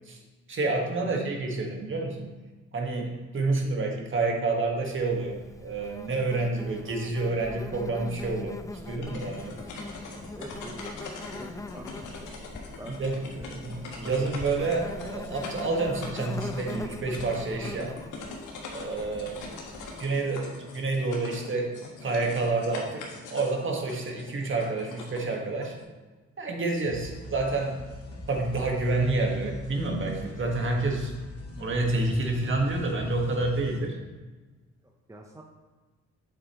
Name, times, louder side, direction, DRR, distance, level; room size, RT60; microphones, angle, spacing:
voice 1, 0.5-2.3 2.7-5.4 5.6-8.6 8.9-9.5 12.9-18.0 18.7-19.4 20.0-21.7 22.0-23.0 23.3-25.8 26.4-27.8 28.3-31.1 31.6-34.0, right 3 dB, 40° right, 1 dB, 1.6 m, -28 dB
Insect, 4.9-20.1, left 2 dB, 10° left, 0.5 m, -42 dB
sound 1, 8.8-25.8, left 3 dB, 85° left, 1.5 m, -43 dB
voice 2, 9.4-9.8 10.3-11.0 11.3-12.3 12.8-13.0 13.3-14.2 34.8-35.4, right 1 dB, 10° right, 1 dB, 0.9 m, -46 dB
sound 2, 26.8-33.8, left 1 dB, 50° left, 2.1 m, -42 dB
8.1 x 7.6 x 3.1 m, 1.3 s
cardioid pair, 90°, 30 cm